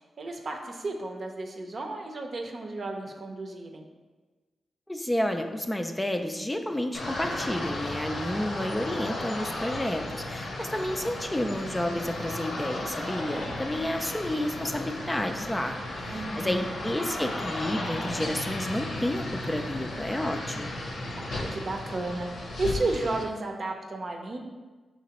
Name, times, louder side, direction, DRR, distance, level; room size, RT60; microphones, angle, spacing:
voice 1, 0.2-3.8 16.1-16.8 21.1-24.4, right 2 dB, 55° right, 2 dB, 0.7 m, -33 dB
voice 2, 4.9-20.7, left 1 dB, 15° left, 5 dB, 0.4 m, -31 dB
sound 1, 6.9-23.2, left 1 dB, 80° left, 0.8 m, -35 dB
5.8 x 3.0 x 2.9 m, 1.3 s
cardioid pair, 50°, 0 cm